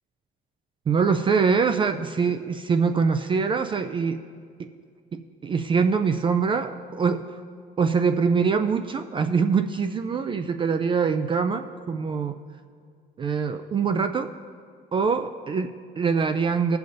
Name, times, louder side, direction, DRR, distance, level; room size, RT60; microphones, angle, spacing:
voice 1, 0.9-4.2 4.6-4.7 5.1-7.4 7.8-12.4 13.2-14.3 14.9-16.8, right 5 dB, 30° right, 8 dB, 0.3 m, -24 dB
19.0 x 6.8 x 2.6 m, 2.1 s
cardioid pair, 110°, 17 cm